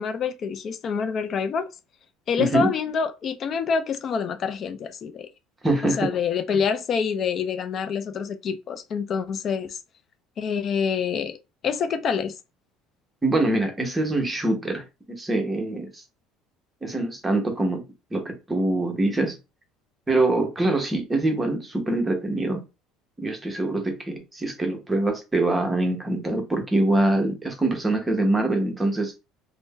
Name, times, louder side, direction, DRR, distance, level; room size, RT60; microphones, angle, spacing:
voice 1, 0.0-1.7 2.3-5.3 5.8-9.8 10.4-11.4 11.6-12.4, left 6 dB, 40° left, 0.3 m, -26 dB
voice 2, 2.4-2.7 5.6-6.1 6.5-6.6 13.2-16.0 16.8-17.8 18.1-19.4 20.1-22.6 23.2-29.1, right 2 dB, 15° right, 0.8 m, -24 dB
2.5 x 2.1 x 3.7 m
cardioid pair, 125°, 0 cm